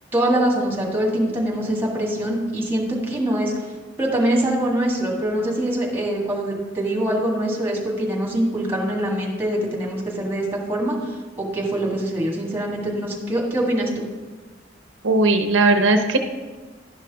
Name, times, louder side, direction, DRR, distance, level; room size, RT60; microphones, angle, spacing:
voice 1, 0.1-3.5 4.0-14.1, right 1 dB, 10° right, -2 dB, 1.7 m, -23 dB
voice 2, 15.0-16.2, right 2 dB, 80° right, 6 dB, 0.7 m, -17 dB
11.0 x 5.9 x 3.5 m, 1.3 s
head